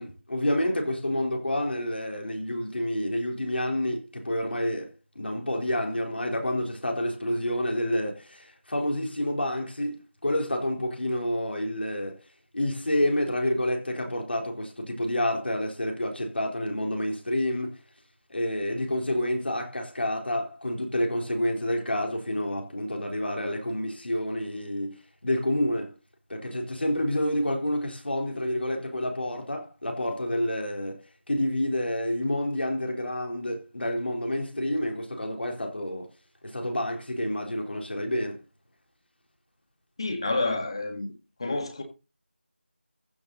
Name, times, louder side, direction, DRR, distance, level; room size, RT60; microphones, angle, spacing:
voice 1, 0.0-12.2 12.5-17.8 18.3-25.9 26.3-31.0 31.3-36.1 36.4-38.4, left 1 dB, 60° left, 4.1 m, -29 dB
voice 2, 40.0-41.1 41.4-41.8, left 2 dB, 25° left, 1.8 m, -29 dB
15.0 x 7.0 x 4.1 m
figure-of-eight pair, 175°, 6 cm